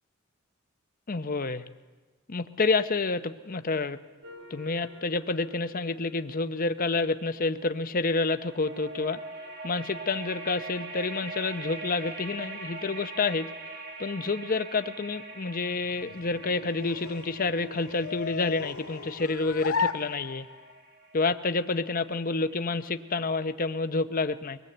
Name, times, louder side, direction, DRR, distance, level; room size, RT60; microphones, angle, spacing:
voice 1, 1.1-1.6 2.3-4.0 4.5-9.2 9.6-13.5 14.0-20.5 21.1-24.6, left 3 dB, 45° left, 10 dB, 0.8 m, -29 dB
sound 1, 4.2-7.5 8.3-23.1, right 3 dB, 55° right, 4.1 m, -44 dB
sound 2, 15.7-20.8, left 5 dB, 90° left, 0.9 m, -35 dB
24.0 x 19.5 x 8.0 m, 1.3 s
head